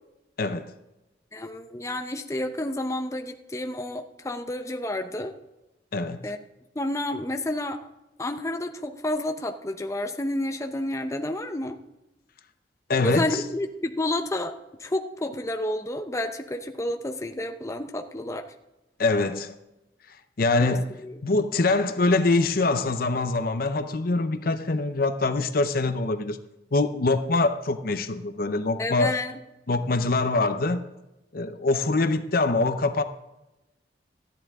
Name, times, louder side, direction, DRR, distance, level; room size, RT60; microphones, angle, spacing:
voice 1, 0.4-0.7 5.9-6.2 12.9-13.4 19.0-19.5 20.1-20.9 21.2-26.4 26.7-29.1 29.7-30.8 31.3-33.0, left 3 dB, 55° left, 0.7 m, -24 dB
voice 2, 1.3-5.3 6.2-6.4 6.7-7.8 8.2-11.8 13.0-14.5 14.8-18.5 20.6-20.7 21.0-21.2 28.8-29.3, left 1 dB, 15° left, 0.7 m, -30 dB
14.0 x 10.5 x 3.6 m
head